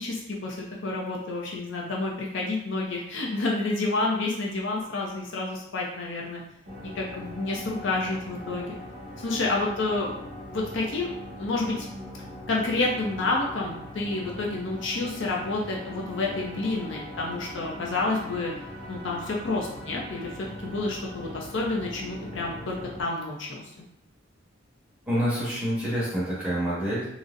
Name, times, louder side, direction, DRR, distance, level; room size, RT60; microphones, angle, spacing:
voice 1, 0.0-6.4 6.9-8.7 9.2-10.1 10.5-11.1 11.4-11.9 12.5-18.5 18.9-23.6, left 2 dB, 70° left, -2 dB, 0.6 m, -29 dB
sound 1, 6.7-23.0, equal, 55° right, 1.4 m, -41 dB
voice 2, 25.1-27.1, equal, 5° right, -9 dB, 1.2 m, -27 dB
3.8 x 2.1 x 2.5 m, 0.76 s
head